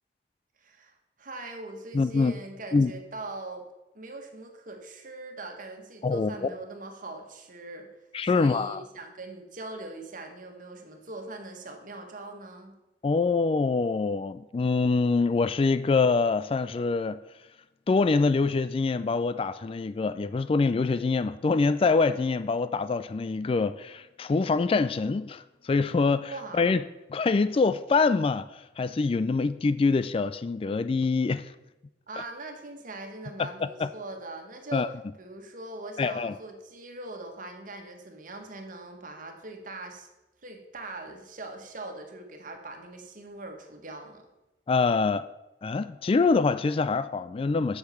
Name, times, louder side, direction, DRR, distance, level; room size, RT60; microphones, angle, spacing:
voice 1, 0.6-3.7 3.9-7.9 8.2-12.8 26.3-26.7 32.1-34.9 35.2-40.1 40.4-44.3, right 2 dB, 50° right, 1.5 m, -41 dB
voice 2, 1.9-2.3 2.7-2.9 6.0-6.5 8.1-8.8 13.0-17.2 17.9-26.8 27.1-31.5 33.4-33.9 34.7-34.9 36.0-36.3 44.7-45.3 45.6-47.8, left 4 dB, 30° left, 0.3 m, -25 dB
8.0 x 6.6 x 7.0 m
head